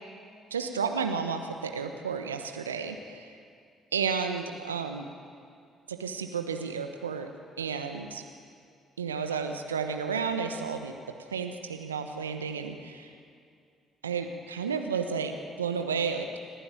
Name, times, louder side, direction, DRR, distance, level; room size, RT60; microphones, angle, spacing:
voice 1, 0.5-3.3 3.9-5.1 5.9-7.3 7.6-8.2 9.0-10.9 11.3-13.1 14.0-16.4, right 6 dB, 85° right, 6 dB, 1.1 m, -32 dB
29.5 x 11.5 x 9.1 m, 2.4 s
figure-of-eight pair, 45°, 0 cm